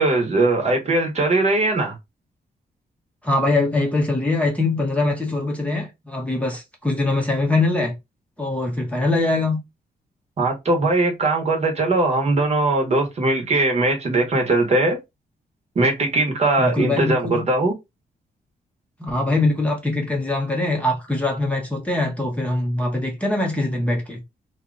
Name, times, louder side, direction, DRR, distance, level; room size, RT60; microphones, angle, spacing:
voice 1, 0.0-1.9 10.4-15.0 15.7-17.7, right 2 dB, 40° right, 1.1 m, -20 dB
voice 2, 3.2-7.9 8.4-9.6 16.6-17.4 19.0-24.2, left 2 dB, 10° left, 0.8 m, -22 dB
2.8 x 2.3 x 3.7 m
wide cardioid pair, 140°, 17 cm